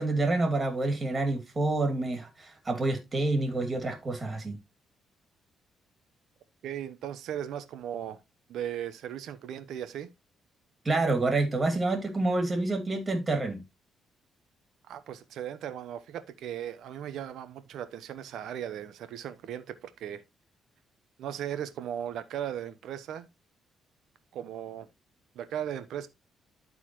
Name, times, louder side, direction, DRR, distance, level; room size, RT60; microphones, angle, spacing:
voice 1, 0.0-4.6 10.8-13.6, right 2 dB, 25° right, 2.5 m, -28 dB
voice 2, 6.6-8.2 8.5-10.1 14.9-20.2 21.2-23.3 24.3-24.9 25.3-26.1, right 10 dB, 80° right, 0.9 m, -37 dB
12.0 x 4.1 x 3.0 m
cardioid pair, 90°, 0 cm